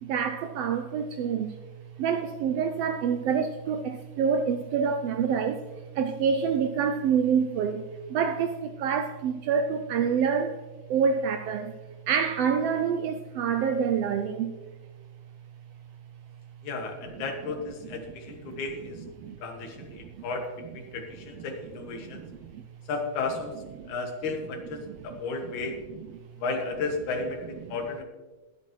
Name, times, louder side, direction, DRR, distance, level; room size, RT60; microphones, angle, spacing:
voice 1, 0.0-1.6 2.0-7.8 8.1-10.6 10.9-11.7 12.1-14.5 18.5-18.6 19.2-19.4 19.9-20.2 22.0-22.6 23.8-23.9 24.9-25.2 25.4-25.5 27.6-27.8, right 6 dB, 80° right, 1.4 m, -27 dB
voice 2, 16.6-19.0 19.4-22.2 22.9-23.6 23.9-25.8 26.4-28.0, left 3 dB, 90° left, 2.9 m, -34 dB
20.5 x 8.2 x 3.2 m
omnidirectional pair, 3.3 m